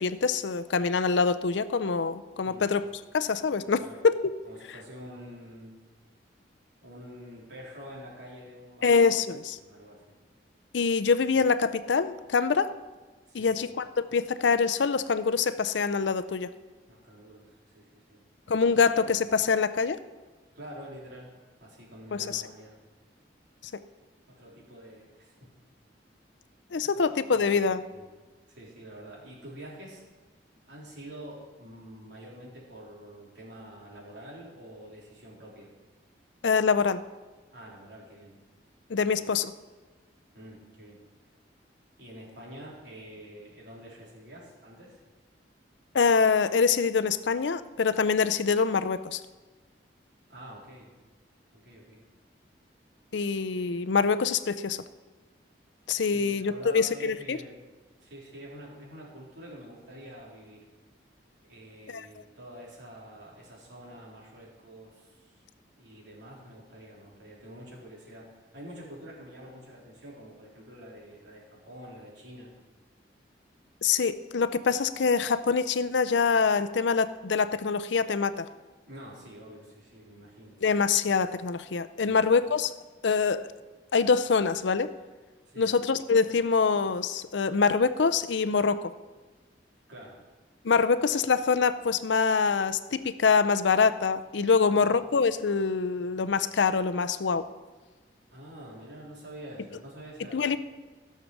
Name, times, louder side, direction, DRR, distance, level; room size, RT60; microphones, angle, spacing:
voice 1, 0.0-2.8 3.1-4.3 8.8-9.6 10.7-12.7 13.3-16.5 18.5-20.0 22.1-22.4 26.7-27.9 36.4-37.0 38.9-39.5 45.9-49.2 53.1-54.8 55.9-57.4 61.9-62.1 73.8-78.5 80.6-82.7 83.0-83.5 83.9-84.9 85.6-88.9 90.6-97.5 100.3-100.6, left 5 dB, 75° left, 13 dB, 0.5 m, -25 dB
voice 2, 4.4-5.8 6.8-8.9 9.6-10.0 13.3-13.6 16.9-18.2 18.7-18.8 20.5-21.3 21.6-22.8 24.3-25.5 26.9-27.0 27.3-27.6 27.9-28.0 28.5-30.0 30.7-35.7 37.5-38.3 39.0-39.1 40.3-41.0 42.0-45.0 50.3-50.9 51.5-52.0 56.0-57.6 58.0-60.7 61.5-65.4 65.8-72.5 78.9-80.6 82.0-82.2 85.5-85.7 89.9-90.2 94.6-95.0 98.3-100.6, equal, 70° right, -4 dB, 3.8 m, -47 dB
15.5 x 6.6 x 6.1 m, 1.3 s
head